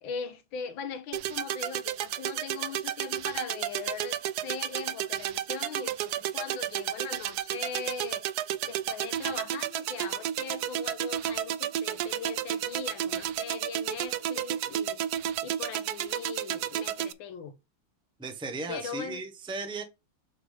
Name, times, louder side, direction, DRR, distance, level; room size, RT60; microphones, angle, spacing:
voice 1, 0.0-8.3 8.6-17.5 18.7-19.2, left 6 dB, 90° left, 1.7 m, -40 dB
sound 1, 1.1-17.1, right 11 dB, 75° right, 0.9 m, -32 dB
voice 2, 18.2-19.8, right 3 dB, 5° right, 0.4 m, -36 dB
7.0 x 3.4 x 5.0 m
omnidirectional pair, 2.1 m